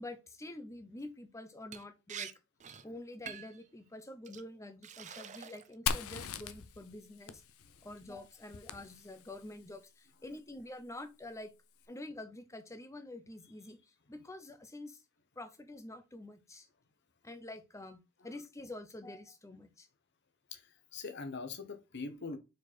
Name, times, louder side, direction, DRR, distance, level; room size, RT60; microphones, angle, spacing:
voice 1, 0.0-2.3 2.8-7.4 7.8-11.5 11.9-13.8 14.1-15.0 15.4-16.7 17.2-19.9, left 1 dB, 15° left, 0.8 m, -47 dB
Liquid, 1.7-2.3 2.6-2.8 3.3-3.6 4.2-4.4 4.8-5.7 6.1-6.5, right 7 dB, 35° right, 0.6 m, -46 dB
Fire, 5.9-9.5, left 7 dB, 75° left, 0.6 m, -40 dB
voice 2, 20.5-22.4, left 4 dB, 55° left, 1.0 m, -43 dB
4.8 x 4.3 x 4.5 m
head